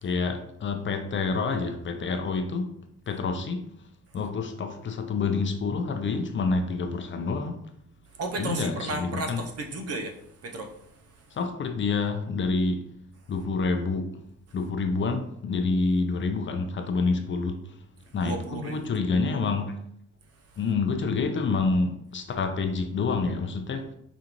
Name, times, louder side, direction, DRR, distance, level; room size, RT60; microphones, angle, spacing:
voice 1, 0.0-2.7 3.1-3.6 4.1-7.6 8.4-9.4 11.3-12.8 13.3-14.1 14.5-17.6 18.1-19.7 20.6-23.9, left 4 dB, 40° left, 6 dB, 0.6 m, -27 dB
voice 2, 8.1-11.3 18.1-19.6, right 2 dB, 55° right, 4 dB, 0.7 m, -35 dB
5.0 x 2.4 x 2.9 m, 0.72 s
cardioid pair, 90°, 30 cm